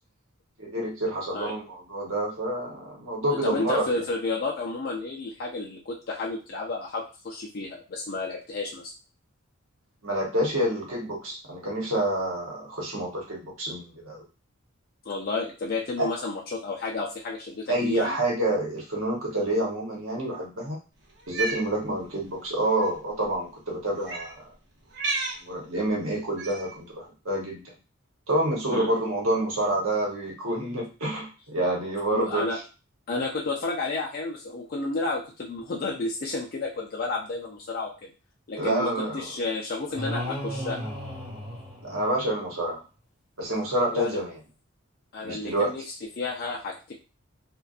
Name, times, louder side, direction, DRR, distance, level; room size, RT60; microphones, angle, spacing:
voice 1, 0.6-4.0 10.0-14.2 16.0-16.1 17.7-20.8 21.3-24.4 25.4-27.7 28.3-32.5 38.6-39.3 41.8-42.8 43.4-44.4 45.2-45.7, right 1 dB, 75° right, -2 dB, 0.9 m, -28 dB
voice 2, 3.4-8.9 15.1-18.1 28.7-28.9 32.1-32.6 33.1-38.1 38.5-40.9 43.9-44.2 45.1-46.9, left 3 dB, 45° left, -3 dB, 0.4 m, -31 dB
Cat, 21.2-21.7 22.7-22.9 24.0-24.3 24.9-25.4 26.4-26.7, right 3 dB, 55° right, 0.7 m, -31 dB
sound 1, 39.9-42.5, equal, 25° right, 1.1 m, -35 dB
2.5 x 2.2 x 2.4 m, 0.32 s
head